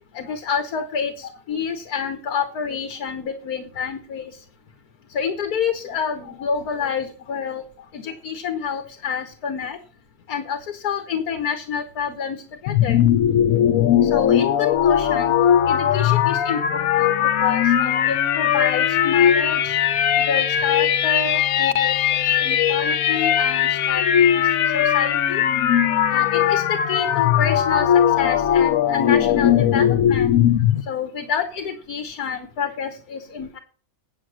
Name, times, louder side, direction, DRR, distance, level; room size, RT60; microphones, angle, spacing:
voice 1, 0.1-4.3 5.1-7.6 7.9-9.8 10.3-12.4 12.6-13.0 14.0-15.3 15.7-19.8 20.2-24.4 24.7-25.4 26.1-27.9 28.2-30.3 30.9-33.6, left 6 dB, 90° left, 7 dB, 1.6 m, -28 dB
sound 1, 12.7-30.8, left 9 dB, 70° left, 1.1 m, -19 dB
8.6 x 8.1 x 6.3 m, 0.40 s
omnidirectional pair, 1.6 m